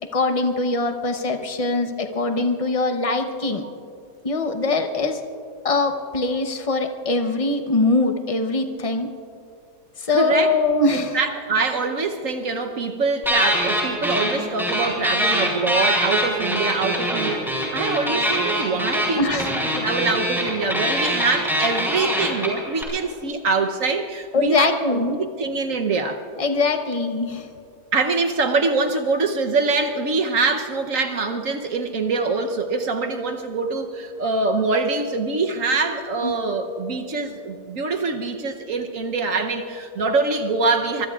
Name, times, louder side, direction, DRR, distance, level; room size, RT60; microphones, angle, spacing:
voice 1, 0.1-3.6 4.2-5.2 5.6-9.1 10.0-11.2 19.1-19.5 24.3-25.2 26.4-27.5 36.2-36.3, left 3 dB, 35° left, 6 dB, 0.6 m, -22 dB
voice 2, 10.1-10.5 10.9-26.2 27.9-41.1, right 3 dB, 55° right, 6 dB, 1.1 m, -24 dB
sound 1, 13.2-14.3 14.6-22.8, equal, ahead, 4.0 m, -23 dB
24.0 x 23.5 x 2.4 m, 2.5 s
omnidirectional pair, 1.8 m